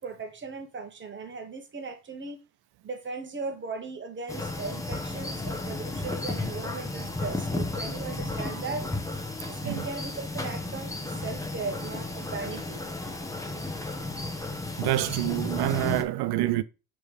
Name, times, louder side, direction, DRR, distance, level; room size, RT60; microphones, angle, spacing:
voice 1, 0.0-2.4 2.8-8.9 9.5-12.8, right 4 dB, 30° right, 1.3 m, -37 dB
sound 1, 4.3-16.0, left 2 dB, 10° left, 1.0 m, -33 dB
voice 2, 14.8-16.6, right 15 dB, 65° right, 0.7 m, -27 dB
7.0 x 3.3 x 4.9 m
cardioid pair, 130°, 41 cm